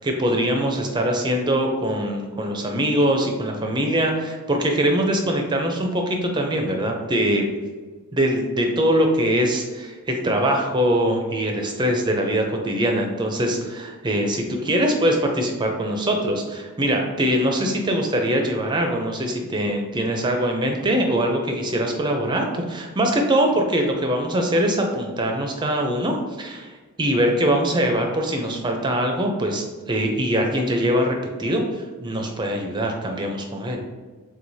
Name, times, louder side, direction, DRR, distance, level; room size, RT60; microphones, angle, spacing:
voice 1, 0.0-7.5 8.1-26.7 27.0-31.6 32.0-33.8, equal, 20° right, 2 dB, 0.4 m, -22 dB
4.6 x 3.6 x 2.6 m, 1.4 s
head